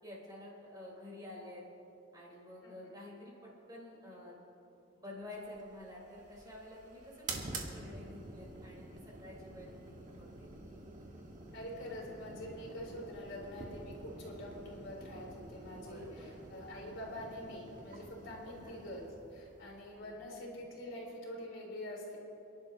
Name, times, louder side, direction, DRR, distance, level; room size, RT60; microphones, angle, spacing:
voice 1, 0.0-1.6 2.1-4.4 5.0-10.6 15.8-16.3 18.4-18.7 20.0-20.2, left 1 dB, 20° right, -4 dB, 4.0 m, -50 dB
sound 1, 5.4-20.7, right 2 dB, 40° right, 1.6 m, -49 dB
voice 2, 11.5-19.1 19.3-22.2, left 1 dB, 70° left, -3 dB, 3.6 m, -45 dB
28.5 x 11.5 x 2.9 m, 2.8 s
head